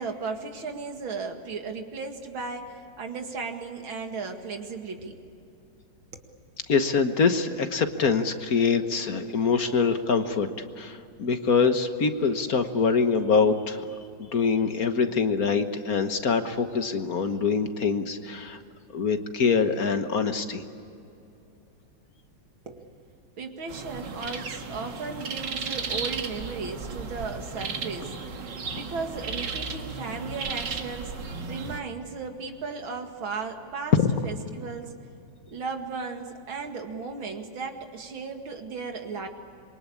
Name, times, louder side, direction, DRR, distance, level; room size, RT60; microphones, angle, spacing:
voice 1, 0.0-5.2 6.1-6.2 22.6-23.0 23.4-34.0 34.2-34.9 35.5-39.3, right 4 dB, 90° right, 4 dB, 2.9 m, -36 dB
voice 2, 6.7-10.5 10.8-13.8 14.2-18.6 18.9-20.6 33.9-34.1, left 5 dB, 50° left, 8 dB, 1.6 m, -24 dB
sound 1, 23.7-31.8, right 4 dB, 65° right, 2.3 m, -35 dB
26.5 x 23.5 x 8.6 m, 2.7 s
omnidirectional pair, 2.1 m